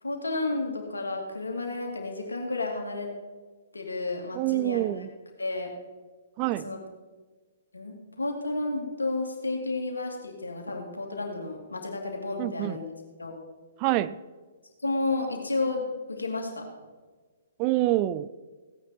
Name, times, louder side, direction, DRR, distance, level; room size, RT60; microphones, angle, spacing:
voice 1, 0.0-3.1 3.7-5.0 5.4-5.7 6.4-6.8 7.7-12.8 13.2-13.4 14.8-16.7, left 2 dB, 75° left, 1 dB, 2.5 m, -32 dB
voice 2, 4.4-5.1 6.4-6.7 12.4-12.8 13.8-14.2 17.6-18.3, right 16 dB, 30° right, 16 dB, 0.4 m, -26 dB
16.0 x 9.2 x 4.4 m, 1.4 s
figure-of-eight pair, 120°, 0 cm